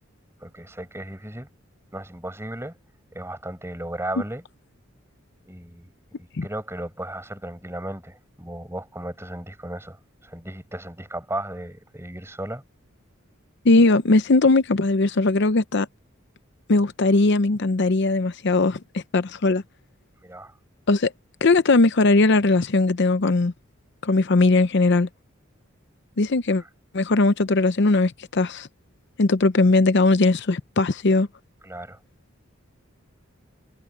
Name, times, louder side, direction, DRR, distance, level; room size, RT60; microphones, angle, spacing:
voice 1, 0.4-1.5 1.9-2.8 3.1-4.4 5.5-10.0 10.2-12.6 20.2-20.5 31.6-32.0, right 1 dB, 10° right, 7.3 m, -35 dB
voice 2, 13.6-15.9 16.7-19.6 20.9-21.1 21.4-23.5 24.0-25.1 26.2-26.6 26.9-28.7 29.2-31.3, left 3 dB, 55° left, 0.7 m, -19 dB
head